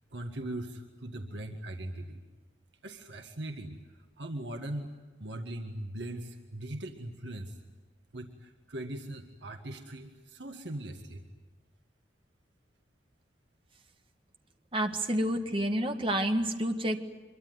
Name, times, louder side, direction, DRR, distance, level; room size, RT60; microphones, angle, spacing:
voice 1, 0.1-2.2 2.8-3.8 4.2-4.9 5.2-7.6 8.1-11.2, right 1 dB, 70° right, 4 dB, 1.9 m, -40 dB
voice 2, 14.7-17.0, right 1 dB, 30° right, 5 dB, 1.7 m, -29 dB
25.5 x 23.0 x 9.5 m, 1.2 s
head